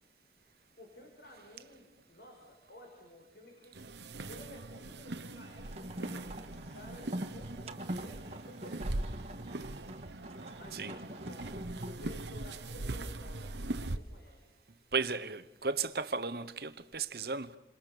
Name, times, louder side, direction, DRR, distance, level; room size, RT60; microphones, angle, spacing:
voice 1, 0.8-3.8 4.3-9.6 10.5-11.5 11.7-14.5, left 1 dB, 65° left, 5.5 m, -54 dB
sound 1, 3.7-14.0, right 2 dB, 80° right, 1.1 m, -41 dB
sound 2, 5.6-12.1, right 1 dB, 35° right, 1.6 m, -44 dB
voice 2, 14.9-17.6, right 4 dB, 60° right, 1.1 m, -35 dB
28.5 x 27.0 x 6.9 m
head